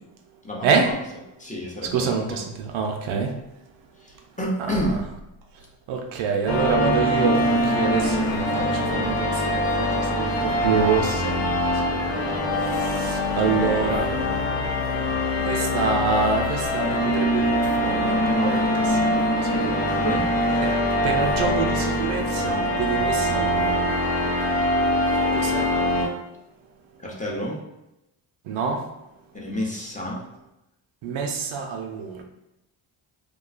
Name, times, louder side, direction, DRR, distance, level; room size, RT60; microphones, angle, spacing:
voice 1, 0.4-1.0 1.4-2.4 4.0-5.0 18.9-19.1 20.0-20.3 27.0-27.6 29.3-30.2, equal, 15° left, -3 dB, 0.6 m, -29 dB
voice 2, 1.9-3.3 4.6-5.0 5.9-11.5 11.8-12.2 13.0-14.1 15.4-19.9 20.6-20.7 21.0-23.9 25.3-25.7 28.5-28.8 31.0-32.2, right 5 dB, 70° right, 3 dB, 0.6 m, -26 dB
sound 1, 6.5-26.1, left 1 dB, 60° left, 0.7 m, -23 dB
2.3 x 2.2 x 2.3 m, 0.89 s
supercardioid pair, 60°, 49 cm